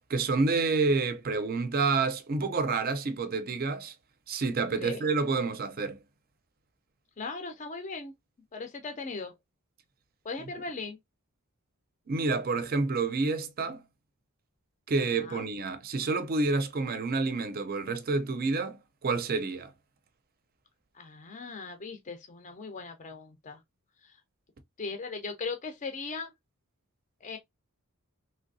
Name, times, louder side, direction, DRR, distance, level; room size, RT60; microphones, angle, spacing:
voice 1, 0.1-3.9 4.3-6.0 12.1-13.8 14.9-18.8 19.0-19.7, right 3 dB, 45° right, 0.5 m, -28 dB
voice 2, 7.2-8.1 8.5-9.3 10.2-11.0 15.1-15.4 20.9-23.6 24.0-24.2 24.8-26.3 27.2-27.4, left 4 dB, 35° left, 0.5 m, -38 dB
3.3 x 2.7 x 2.5 m
head